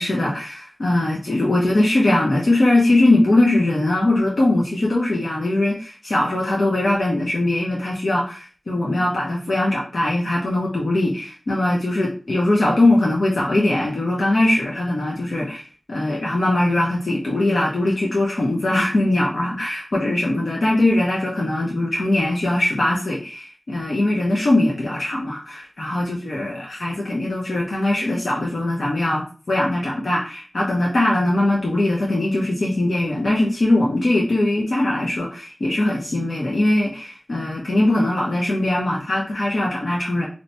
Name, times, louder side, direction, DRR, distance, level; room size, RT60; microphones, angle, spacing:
voice 1, 0.0-15.6 15.9-40.3, left 1 dB, 85° left, -3 dB, 0.7 m, -21 dB
2.8 x 2.2 x 4.1 m, 0.38 s
wide cardioid pair, 70°, 0 cm